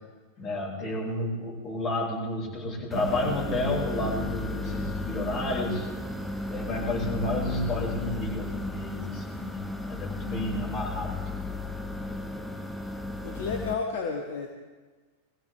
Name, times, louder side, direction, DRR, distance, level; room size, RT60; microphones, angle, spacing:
voice 1, 0.4-5.9 6.4-11.6, left 1 dB, 30° left, -4 dB, 6.1 m, -31 dB
sound 1, 2.9-13.7, left 2 dB, 5° left, 1.1 m, -34 dB
voice 2, 13.2-14.5, left 5 dB, 55° left, 3 dB, 1.2 m, -31 dB
22.5 x 15.5 x 3.5 m, 1.4 s
figure-of-eight pair, 90°, 0 cm